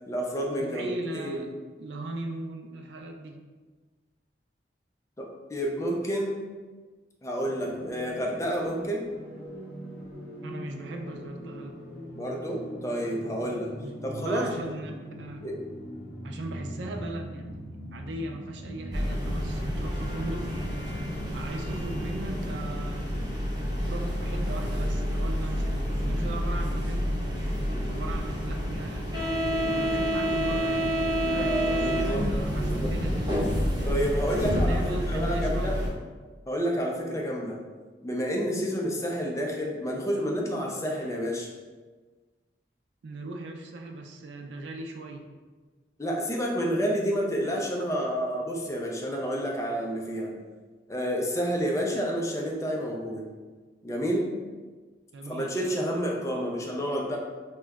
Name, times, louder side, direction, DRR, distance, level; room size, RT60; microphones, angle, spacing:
voice 1, 0.0-1.5 5.2-6.4 7.2-9.1 12.2-13.7 14.0-14.5 15.4-15.6 31.2-32.2 32.5-32.9 33.9-35.8 36.5-37.6 38.0-41.5 46.0-50.3 50.9-53.3 53.8-54.3 55.3-57.2, equal, 15° left, -1 dB, 0.4 m, -29 dB
voice 2, 0.6-1.5 1.8-3.4 10.4-11.8 13.8-15.5 16.2-20.5 21.3-23.1 23.9-29.1 29.6-33.5 34.2-35.8 43.0-45.2 55.1-55.6, right 2 dB, 80° right, 4 dB, 0.4 m, -39 dB
sound 1, 7.4-22.4, equal, 60° left, 0.6 m, -41 dB
sound 2, 18.9-35.9, equal, 25° right, 1.0 m, -28 dB
2.9 x 2.2 x 3.5 m, 1.4 s
head